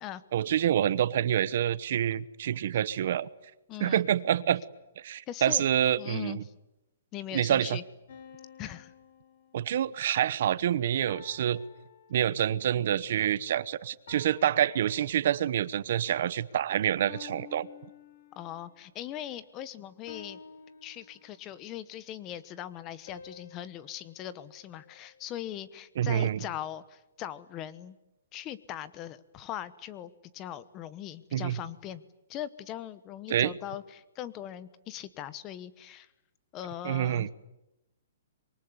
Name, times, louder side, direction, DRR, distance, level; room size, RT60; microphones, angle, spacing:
voice 1, 0.3-3.3 3.8-4.6 5.0-6.4 7.3-7.8 9.5-11.6 12.1-17.7 26.0-26.4 31.3-31.6 33.3-33.5 36.8-37.3, right 10 dB, 45° right, 18 dB, 0.9 m, -27 dB
voice 2, 3.7-4.0 5.3-5.7 6.0-6.5 7.1-7.8 8.6-8.9 18.4-20.4 20.8-28.0 28.3-32.0 32.3-36.1 36.5-37.3, left 11 dB, 15° left, 16 dB, 1.0 m, -40 dB
sound 1, 8.1-10.0 11.1-12.7 14.1-15.6 17.1-18.7 20.1-21.7 23.1-25.4, left 7 dB, 45° left, 3.5 m, -52 dB
25.5 x 23.5 x 9.6 m, 0.92 s
hypercardioid pair, 180°, 0 cm